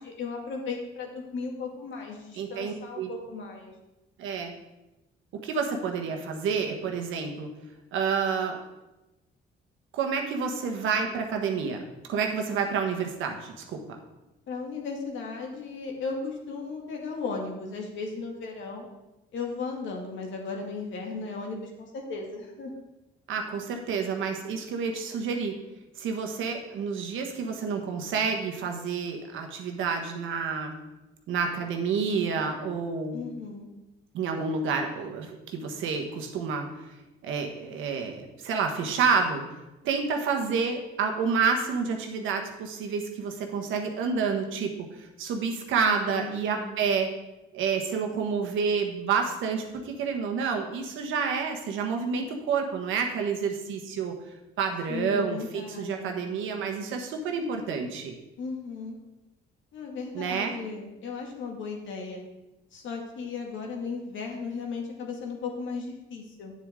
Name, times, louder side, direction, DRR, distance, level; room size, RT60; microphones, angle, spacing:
voice 1, 0.0-3.7 14.5-18.9 19.3-22.7 33.1-33.7 45.8-46.7 54.9-56.2 58.4-59.0 59.7-62.2 62.7-66.5, left 4 dB, 75° left, 1 dB, 2.1 m, -36 dB
voice 2, 2.3-3.1 4.2-4.5 5.4-7.5 7.9-8.6 9.9-11.8 12.1-14.0 23.3-25.5 26.0-30.7 31.3-33.2 34.1-37.0 37.2-39.4 39.8-47.1 47.5-54.1 54.6-58.1 60.1-60.6, right 5 dB, 85° right, 3 dB, 1.4 m, -29 dB
9.1 x 7.6 x 3.7 m, 0.97 s
cardioid pair, 90°, 20 cm